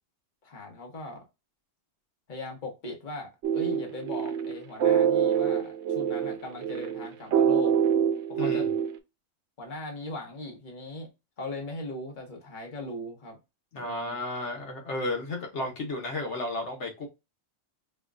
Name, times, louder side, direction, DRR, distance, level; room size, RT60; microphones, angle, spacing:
voice 1, 0.4-1.2 2.3-7.8 8.3-8.7 9.6-11.1 11.4-13.4 13.7-14.2, left 2 dB, 45° left, 1.2 m, -39 dB
sound 1, 3.4-9.0, right 8 dB, 80° right, 0.9 m, -25 dB
voice 2, 8.4-8.7 13.7-17.1, left 2 dB, 75° left, 1.2 m, -33 dB
5.4 x 2.2 x 2.4 m
omnidirectional pair, 1.2 m